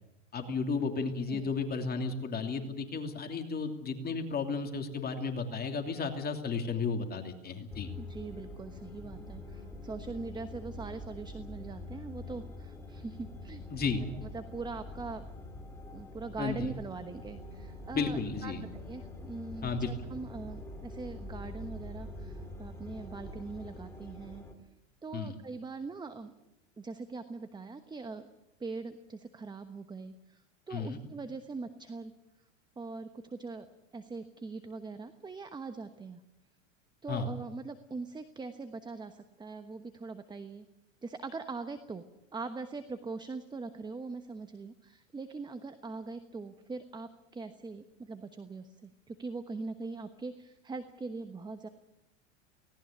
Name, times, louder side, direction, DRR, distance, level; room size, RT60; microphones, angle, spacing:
voice 1, 0.3-7.9 13.7-14.0 16.4-16.7 17.9-18.6 19.6-19.9 25.1-25.3 30.7-31.0 37.1-37.3, left 4 dB, 25° left, 5 dB, 2.8 m, -33 dB
sound 1, 7.7-24.5, left 2 dB, 5° left, 2.9 m, -45 dB
voice 2, 8.0-13.6 14.2-15.2 15.9-24.4 25.0-26.3 26.8-28.2 28.6-32.1 32.8-33.7 33.9-36.2 37.0-40.7 41.0-42.0 42.3-51.7, right 4 dB, 10° right, 10 dB, 1.1 m, -42 dB
18.5 x 18.0 x 9.7 m, 0.92 s
hypercardioid pair, 105°, 38 cm